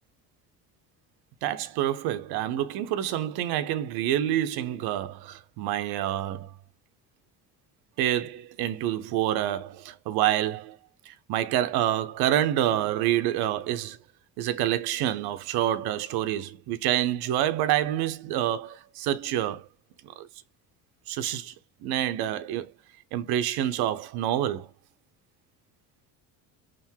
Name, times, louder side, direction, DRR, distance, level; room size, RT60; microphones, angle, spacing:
voice 1, 1.4-6.5 8.0-10.8 11.1-14.0 14.4-19.7 20.0-20.3 21.1-21.5 21.8-22.7 23.1-24.7, right 12 dB, 75° right, 0.7 m, -27 dB
3.7 x 2.5 x 4.4 m
supercardioid pair, 95°, 39 cm